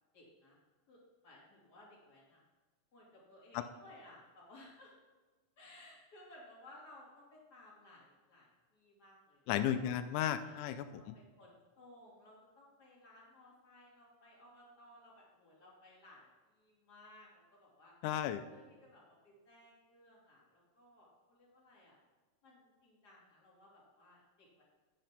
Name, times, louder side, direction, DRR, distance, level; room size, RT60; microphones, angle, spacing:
voice 1, 0.1-0.6 0.9-2.4 2.9-4.9 5.6-9.4 9.8-9.9 10.4-16.3 16.5-17.9 18.5-22.0 22.4-24.6, left 1 dB, 30° left, -5 dB, 3.2 m, -60 dB
voice 2, 9.5-11.2 18.0-18.4, left 10 dB, 90° left, 9 dB, 2.1 m, -34 dB
9.1 x 7.8 x 5.8 m, 1.3 s
omnidirectional pair, 3.6 m